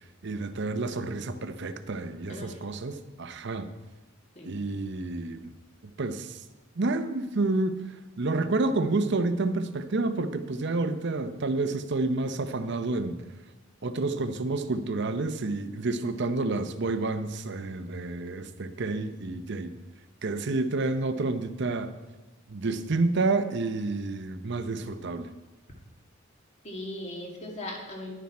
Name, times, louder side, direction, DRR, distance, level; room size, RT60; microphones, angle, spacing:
voice 1, 0.2-3.7 4.4-5.5 6.0-6.4 6.8-7.8 8.2-13.2 13.8-19.7 20.2-21.9 22.5-25.3, right 3 dB, 60° right, 10 dB, 0.7 m, -29 dB
voice 2, 2.2-2.6 4.4-4.5 26.6-28.1, left 1 dB, 35° left, 0 dB, 2.1 m, -38 dB
11.0 x 9.4 x 4.3 m, 1.2 s
head